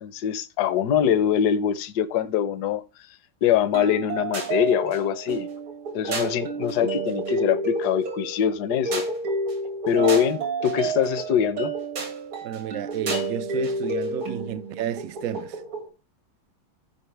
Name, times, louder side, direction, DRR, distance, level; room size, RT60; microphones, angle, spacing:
voice 1, 0.0-2.8 3.4-5.5 5.9-9.1 9.8-11.7, left 9 dB, 60° left, 1.2 m, -23 dB
sound 1, 3.7-15.9, right 2 dB, 85° right, 3.1 m, -30 dB
voice 2, 12.4-15.6, right 11 dB, 65° right, 0.8 m, -32 dB
15.5 x 5.4 x 3.3 m
omnidirectional pair, 2.2 m